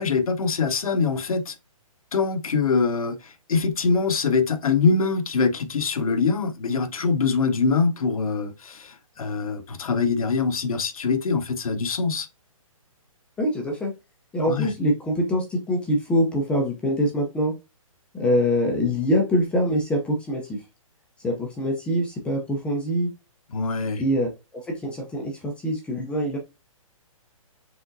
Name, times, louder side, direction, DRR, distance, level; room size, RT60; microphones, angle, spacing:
voice 1, 0.0-1.5 2.1-3.2 3.5-12.3 14.5-14.7 23.5-24.0, left 4 dB, 80° left, 0.9 m, -23 dB
voice 2, 13.4-13.9 14.3-17.5 18.1-20.6 21.2-23.1 24.0-26.4, equal, 5° left, 0.6 m, -24 dB
5.0 x 3.5 x 2.6 m
hypercardioid pair, 155°, 18 cm